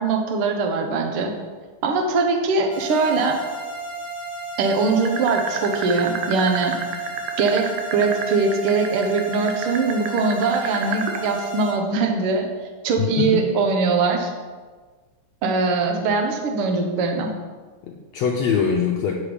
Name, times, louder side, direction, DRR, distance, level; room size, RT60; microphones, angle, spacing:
voice 1, 0.0-1.3 1.8-3.4 4.6-6.8 7.4-12.5 12.8-14.3 15.4-17.3, right 4 dB, 65° right, 3 dB, 1.4 m, -21 dB
sound 1, 2.7-11.7, right 2 dB, 40° right, 3.2 m, -33 dB
sound 2, 5.1-11.3, right 7 dB, 90° right, 2.5 m, -29 dB
voice 2, 13.0-13.5 17.8-19.1, left 6 dB, 80° left, 1 dB, 1.5 m, -23 dB
10.0 x 6.4 x 5.1 m, 1.4 s
omnidirectional pair, 3.9 m